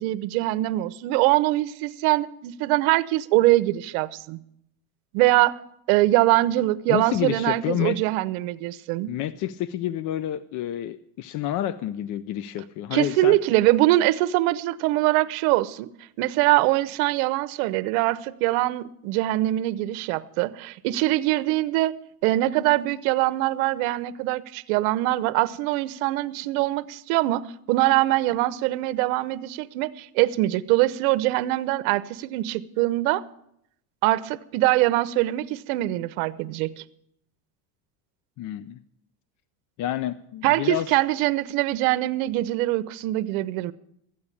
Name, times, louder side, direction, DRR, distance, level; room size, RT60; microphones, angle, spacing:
voice 1, 0.0-4.4 5.1-5.6 5.9-9.1 12.9-15.9 16.2-22.0 22.2-33.2 34.0-36.8 40.4-43.7, right 17 dB, 80° right, 0.8 m, -23 dB
voice 2, 6.9-8.0 9.1-13.4 38.4-38.8 39.8-40.9, left 12 dB, 45° left, 0.6 m, -29 dB
13.5 x 8.7 x 8.4 m
supercardioid pair, 130°, 42 cm